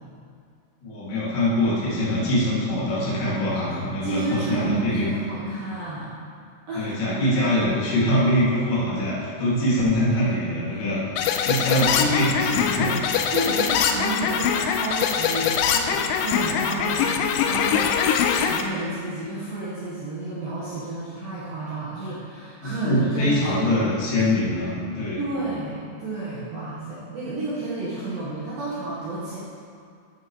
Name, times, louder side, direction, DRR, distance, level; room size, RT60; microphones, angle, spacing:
voice 1, 0.8-5.1 6.7-11.0 11.4-13.0 22.6-25.2, left 1 dB, 65° left, -9 dB, 4.6 m, -23 dB
voice 2, 3.7-6.1 6.7-6.9 13.3-23.9 25.2-29.4, right 2 dB, 65° right, -9 dB, 2.5 m, -31 dB
sound 1, 11.2-18.6, left 8 dB, 85° left, 2.8 m, -23 dB
12.0 x 9.5 x 3.2 m, 2.2 s
omnidirectional pair, 5.7 m